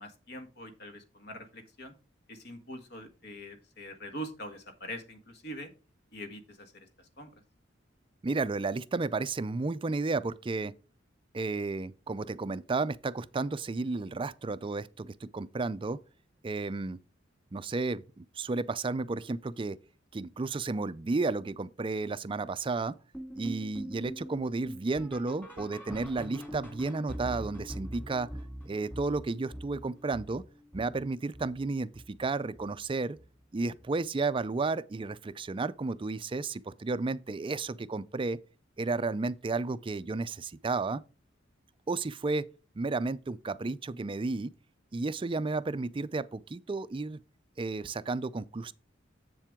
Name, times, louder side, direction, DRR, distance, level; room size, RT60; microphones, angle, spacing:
voice 1, 0.0-1.9 2.3-5.7 6.1-7.4, equal, 55° left, 1.7 m, -44 dB
voice 2, 8.2-10.7 11.3-16.0 16.4-17.0 17.5-19.8 20.1-23.0 23.3-28.3 28.7-30.4 30.7-33.2 33.5-38.4 38.8-41.0 41.9-42.4 42.8-44.5 44.9-47.2 47.6-48.7, right 3 dB, 25° right, 0.4 m, -32 dB
sound 1, 23.1-32.3 32.5-32.9 33.2-33.3 33.8-33.9 34.4-34.5, equal, 10° left, 2.2 m, -43 dB
7.7 x 7.3 x 3.6 m
head